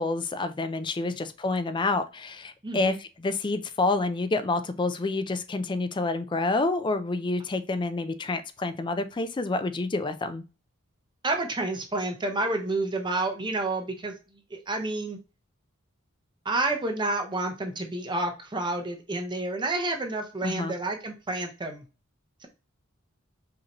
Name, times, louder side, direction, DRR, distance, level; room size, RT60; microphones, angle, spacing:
voice 1, 0.0-10.4 20.4-20.7, left 3 dB, 20° left, 10 dB, 0.3 m, -28 dB
voice 2, 2.6-3.0 11.2-14.1 14.5-15.2 16.4-21.9, right 2 dB, 20° right, 4 dB, 0.6 m, -29 dB
5.1 x 2.8 x 2.9 m, 0.32 s
head